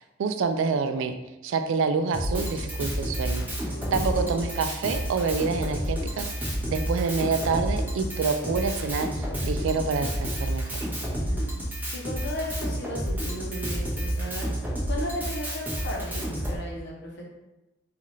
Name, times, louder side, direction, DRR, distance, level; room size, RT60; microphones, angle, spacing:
voice 1, 0.2-1.1 1.4-3.5 3.9-10.9, right 5 dB, 70° right, 8 dB, 0.3 m, -27 dB
Drum kit, 2.1-16.6, equal, 10° right, 0.8 m, -30 dB
voice 2, 3.7-4.5 11.2-11.5 11.8-17.2, left 1 dB, 60° left, -1 dB, 0.8 m, -36 dB
4.1 x 2.4 x 3.0 m, 1.0 s
head